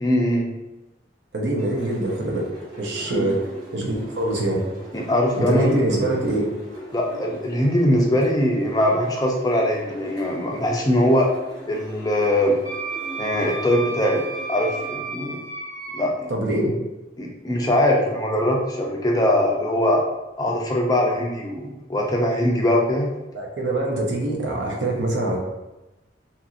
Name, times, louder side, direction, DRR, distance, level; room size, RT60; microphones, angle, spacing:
voice 1, 0.0-0.5 3.1-3.3 4.9-5.8 6.9-11.3 11.7-12.6 13.2-14.2 14.5-15.4 15.9-16.3 17.2-20.0 20.4-23.1, left 1 dB, 20° left, -1 dB, 0.4 m, -21 dB
voice 2, 1.3-2.5 2.8-3.4 3.7-4.6 5.3-6.5 16.3-16.7 23.3-25.4, right 1 dB, 70° right, -1 dB, 0.6 m, -24 dB
sound 1, 1.6-14.9, right 1 dB, 85° right, 1.4 m, -40 dB
Wind instrument woodwind instrument, 12.6-16.0, right 3 dB, 15° right, 0.7 m, -32 dB
2.8 x 2.6 x 2.4 m, 1.0 s
head